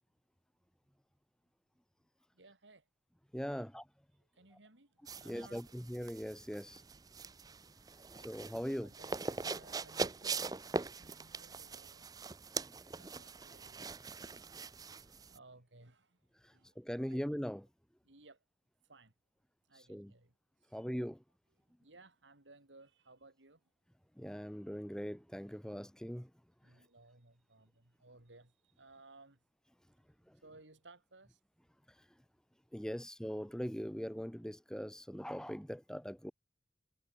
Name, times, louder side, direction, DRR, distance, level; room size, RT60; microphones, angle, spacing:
voice 1, 2.3-2.9 3.5-3.7 4.3-5.6 7.9-8.3 8.6-12.3 12.9-13.8 15.0-16.2 16.5-16.8 17.1-17.2 18.0-18.4 18.8-19.1 19.6-20.8 21.8-23.6 26.6-29.4 30.4-31.4, right 2 dB, 90° right, 3.2 m, -60 dB
voice 2, 3.3-3.8 5.2-6.8 8.1-8.9 12.7-12.8 16.3-17.7 19.7-20.1 20.7-21.2 24.2-26.3 26.6-26.8 30.3-30.4 31.9-32.1 32.7-36.3, equal, 5° left, 1.0 m, -41 dB
sound 1, 5.1-15.4, right 4 dB, 20° right, 0.5 m, -42 dB
head